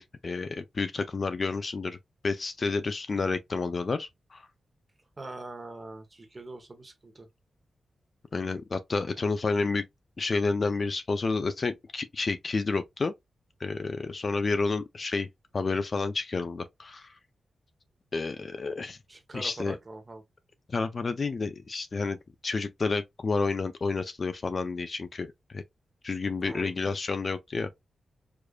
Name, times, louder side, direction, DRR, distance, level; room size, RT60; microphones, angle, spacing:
voice 1, 0.0-2.0 2.2-4.4 8.3-9.9 10.2-13.1 13.6-15.3 15.5-17.1 18.1-19.0 19.3-19.8 20.7-22.2 22.4-25.6 26.0-27.7, left 4 dB, 30° left, 0.3 m, -30 dB
voice 2, 5.2-7.3 19.1-20.2 26.4-26.7, right 2 dB, 20° right, 0.8 m, -43 dB
4.8 x 2.5 x 2.2 m
wide cardioid pair, 175°, 0 cm